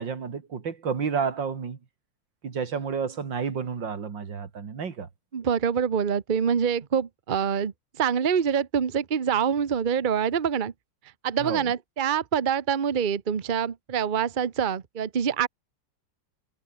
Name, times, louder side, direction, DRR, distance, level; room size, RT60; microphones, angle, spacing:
voice 1, 0.0-1.8 2.4-5.1 11.4-11.7, right 6 dB, 80° right, 3.0 m, -30 dB
voice 2, 5.3-10.7 11.2-15.5, right 7 dB, 35° right, 0.9 m, -25 dB
omnidirectional pair, 2.0 m